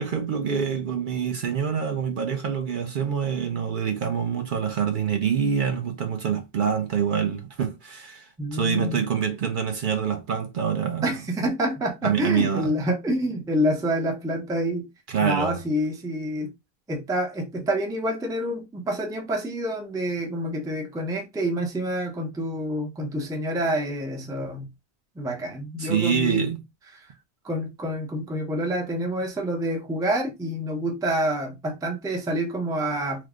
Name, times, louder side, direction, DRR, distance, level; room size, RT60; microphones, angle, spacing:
voice 1, 0.0-11.1 12.0-12.8 15.1-15.6 25.8-26.6, right 7 dB, 60° right, 0.7 m, -26 dB
voice 2, 8.4-9.0 11.0-14.9 15.2-16.5 16.9-24.7 25.2-26.5 26.9-27.0 27.4-33.3, equal, 5° right, 0.4 m, -27 dB
3.2 x 2.0 x 3.5 m
omnidirectional pair, 1.1 m